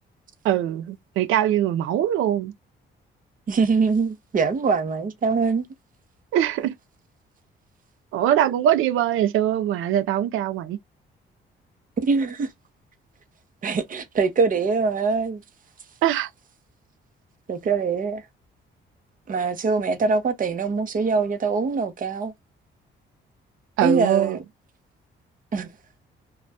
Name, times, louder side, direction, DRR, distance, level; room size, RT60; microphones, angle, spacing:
voice 1, 0.4-2.5 6.3-6.7 8.1-10.8 16.0-16.3 23.8-24.4, right 11 dB, 85° right, 0.4 m, -22 dB
voice 2, 3.5-5.7 12.0-12.5 13.6-15.4 17.5-18.2 19.3-22.3 23.8-24.4 25.5-25.7, right 4 dB, 40° right, 0.8 m, -23 dB
2.6 x 2.3 x 3.2 m
cardioid pair, 85°, 20 cm